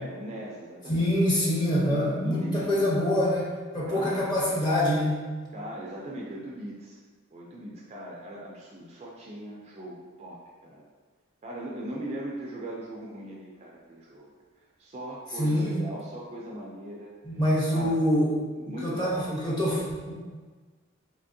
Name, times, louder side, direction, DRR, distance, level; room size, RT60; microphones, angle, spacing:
voice 1, 0.0-1.1 1.6-2.9 3.9-4.3 5.5-7.0 7.3-10.8 11.4-14.3 14.8-17.1 17.7-18.0 18.6-19.3, right 1 dB, 30° right, -3 dB, 0.3 m, -39 dB
voice 2, 0.9-3.4 3.7-5.2 15.4-15.7 17.2-18.3 18.6-20.1, left 1 dB, 20° left, -6 dB, 0.8 m, -25 dB
3.4 x 2.8 x 2.6 m, 1.4 s
head